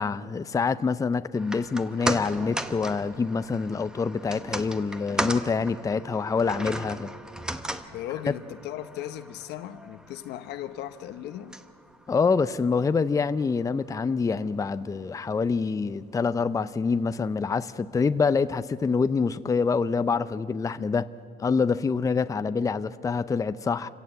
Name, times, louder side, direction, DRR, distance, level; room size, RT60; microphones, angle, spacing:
voice 1, 0.0-7.1 12.1-21.1 21.4-23.9, left 5 dB, 20° left, 0.5 m, -26 dB
sound 1, 1.3-13.7 14.0-14.1, right 1 dB, 5° right, 1.0 m, -37 dB
voice 2, 7.9-11.6, left 12 dB, 80° left, 1.0 m, -37 dB
27.0 x 17.0 x 7.9 m
cardioid pair, 110°, 17 cm